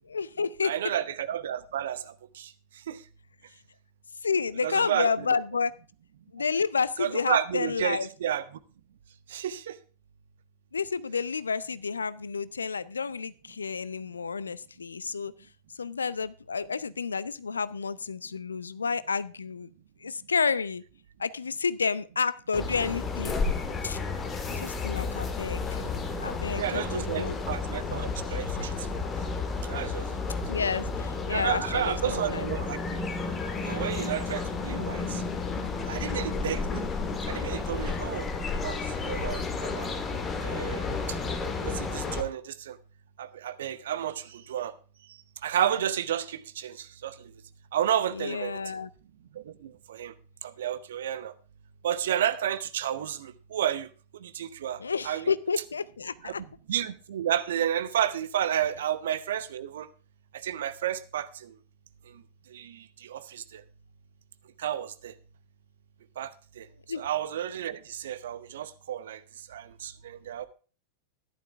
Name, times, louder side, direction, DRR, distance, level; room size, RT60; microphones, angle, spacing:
voice 1, 0.1-0.7 4.2-5.7 6.3-8.1 10.7-15.3 15.8-19.7 20.0-20.8 21.2-23.4 23.8-24.0 24.5-25.8 26.2-27.4 30.5-32.5 48.1-48.9 54.8-56.4 66.9-67.1, left 5 dB, 75° left, 0.5 m, -30 dB
voice 2, 0.6-2.5 2.9-3.0 4.6-5.1 7.0-8.5 9.3-9.8 26.5-28.9 29.6-30.2 31.3-33.1 33.6-35.2 35.9-36.8 37.3-38.3 38.6-39.9 40.4-41.2 41.6-42.8 43.2-44.7 45.4-47.3 47.7-48.6 49.3-50.1 50.4-51.3 51.8-53.9 54.2-55.3 56.2-59.9 60.3-61.5 62.1-62.2 62.5-63.6 64.6-65.1 66.2-66.7 67.0-69.2 69.5-70.5, right 10 dB, 60° right, 0.8 m, -31 dB
sound 1, 22.5-42.2, left 4 dB, 20° left, 1.8 m, -32 dB
13.0 x 11.0 x 3.5 m
figure-of-eight pair, 90°, 0 cm